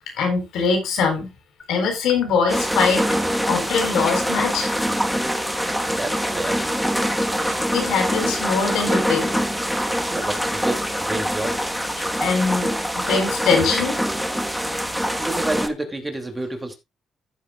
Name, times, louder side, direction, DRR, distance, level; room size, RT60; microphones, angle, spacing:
voice 1, 0.1-1.3 1.7-3.0 3.5-4.7 7.4-9.3 12.0-14.0, left 5 dB, 85° left, 4.3 m, -22 dB
sound 1, 1.6-12.1, left 5 dB, 45° left, 2.9 m, -36 dB
sound 2, 2.5-15.7, equal, ahead, 1.4 m, -24 dB
voice 2, 5.7-6.6 10.1-11.6 15.2-16.8, right 2 dB, 15° right, 2.7 m, -29 dB
14.5 x 7.8 x 2.4 m
cardioid pair, 90°, 0 cm